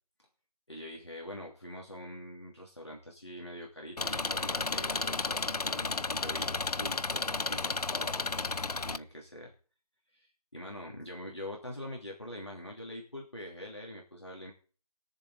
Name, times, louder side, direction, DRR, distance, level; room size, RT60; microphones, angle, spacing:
voice 1, 0.7-8.3 8.7-9.5 10.1-14.5, left 1 dB, 45° left, -1 dB, 2.8 m, -44 dB
Engine, 4.0-9.0, left 3 dB, 80° left, 0.6 m, -33 dB
20.5 x 7.1 x 4.1 m, 0.38 s
figure-of-eight pair, 180°, 20 cm